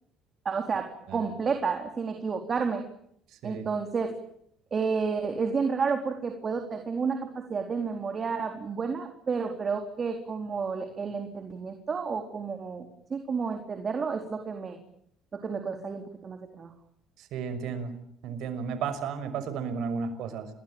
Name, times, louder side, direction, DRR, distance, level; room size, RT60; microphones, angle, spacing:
voice 1, 0.4-2.8 3.4-4.2 4.7-14.8 15.3-16.7, right 5 dB, 35° right, 5 dB, 4.1 m, -31 dB
voice 2, 17.3-17.9 18.2-20.5, right 6 dB, 70° right, 12 dB, 5.8 m, -33 dB
29.0 x 22.5 x 9.0 m, 0.71 s
supercardioid pair, 90°, 0 cm